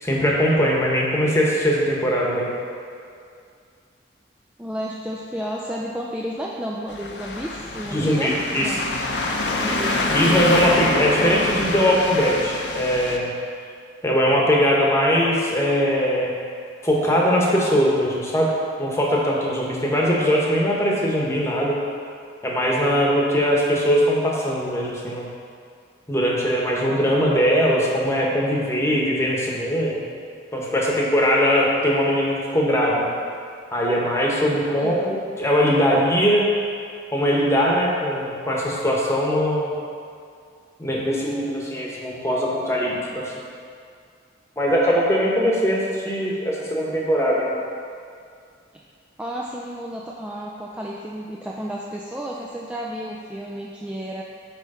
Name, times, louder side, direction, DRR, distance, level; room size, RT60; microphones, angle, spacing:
voice 1, 0.0-2.5 7.9-8.7 10.1-13.3 14.0-16.3 16.8-18.5 18.8-21.8 22.4-25.3 26.1-30.0 30.5-33.1 33.7-36.5 37.1-39.7 40.8-43.3 44.6-47.6, equal, 15° left, -4 dB, 1.0 m, -21 dB
voice 2, 4.6-8.3 8.6-8.9 9.6-10.0 34.7-35.1 48.7-48.8 49.2-54.2, equal, 5° right, -3 dB, 0.3 m, -32 dB
sound 1, 6.9-13.2, left 2 dB, 70° left, 0.7 m, -25 dB
8.4 x 3.2 x 5.4 m, 2.3 s
head